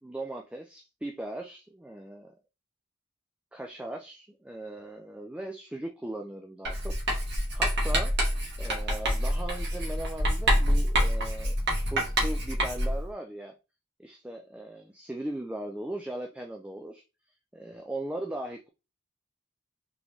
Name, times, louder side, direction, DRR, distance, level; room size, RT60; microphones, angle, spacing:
voice 1, 0.0-2.3 3.5-6.9 7.5-8.1 8.6-13.5 14.0-17.0 17.5-18.7, right 1 dB, 5° right, 0.3 m, -38 dB
Writing, 6.6-13.0, equal, 55° right, 1.5 m, -27 dB
3.8 x 3.5 x 3.0 m
head